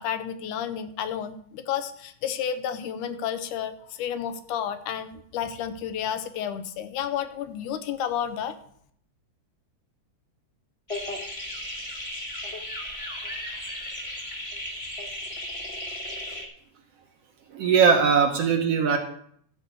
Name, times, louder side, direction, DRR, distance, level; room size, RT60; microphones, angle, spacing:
voice 1, 0.0-8.6, left 9 dB, 80° left, 10 dB, 2.2 m, -31 dB
sound 1, 10.9-16.5, left 1 dB, 30° left, 0.6 m, -35 dB
voice 2, 17.5-19.0, right 6 dB, 65° right, 4 dB, 1.8 m, -20 dB
13.5 x 4.6 x 8.2 m, 0.64 s
omnidirectional pair, 3.6 m